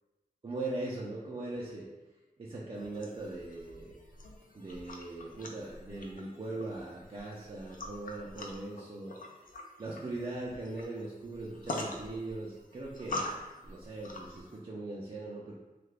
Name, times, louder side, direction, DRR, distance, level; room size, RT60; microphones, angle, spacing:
voice 1, 0.4-1.9 2.4-4.0 4.5-9.2 9.8-13.3 13.6-15.5, right 2 dB, 35° right, -5 dB, 0.4 m, -40 dB
sound 1, 2.7-14.6, left 2 dB, 60° left, 0.4 m, -44 dB
2.8 x 2.4 x 3.3 m, 1.1 s
wide cardioid pair, 100°, 16 cm